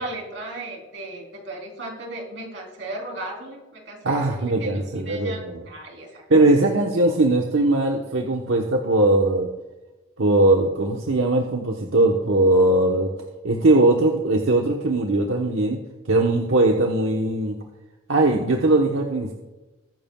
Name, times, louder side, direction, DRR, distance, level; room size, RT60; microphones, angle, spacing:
voice 1, 0.0-6.2, right 2 dB, 70° right, -1 dB, 3.6 m, -36 dB
voice 2, 4.0-5.6 6.3-9.5 10.2-13.1 13.4-15.8 16.1-17.5 18.1-19.3, right 2 dB, 90° right, 0 dB, 1.1 m, -20 dB
22.0 x 11.0 x 2.3 m, 1.1 s
head